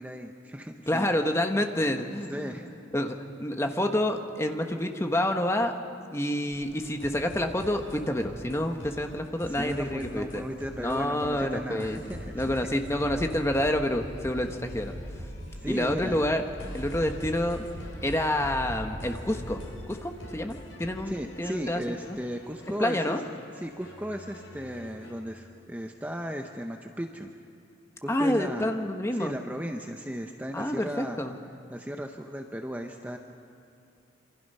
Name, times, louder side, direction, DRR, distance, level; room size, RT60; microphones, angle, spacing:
voice 1, 0.0-1.1 2.3-2.7 9.5-12.7 14.4-14.5 15.4-16.2 21.1-23.2 23.6-27.3 28.0-28.8 29.1-31.2 31.7-33.2, equal, 10° right, 4 dB, 0.8 m, -36 dB
voice 2, 0.9-2.6 2.9-5.7 6.1-10.4 10.8-12.0 12.3-14.9 15.6-16.4 16.7-17.6 18.0-19.6 19.9-22.2 22.8-23.2 28.1-29.4 30.5-31.4, left 1 dB, 15° left, 5 dB, 1.1 m, -28 dB
sound 1, 6.5-25.1, left 1 dB, 85° left, 6.0 m, -46 dB
sound 2, 12.1-12.5 12.8-13.7 14.0-14.4 14.7-15.6 15.9-16.3 16.6-17.4 17.7-18.1 18.4-19.5, equal, 70° right, 3.6 m, -40 dB
27.0 x 25.0 x 5.6 m, 2.7 s
head